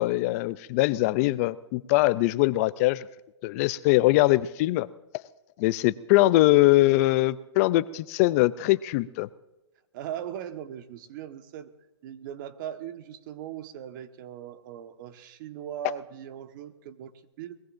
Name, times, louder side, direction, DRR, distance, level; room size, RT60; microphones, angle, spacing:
voice 1, 0.0-3.1 3.4-4.9 5.6-9.3, left 18 dB, 35° left, 17 dB, 0.4 m, -22 dB
voice 2, 9.9-11.7 12.0-17.1 17.4-17.6, right 10 dB, 45° right, 8 dB, 1.4 m, -39 dB
23.0 x 21.0 x 2.6 m, 1.0 s
hypercardioid pair, 140°, 14 cm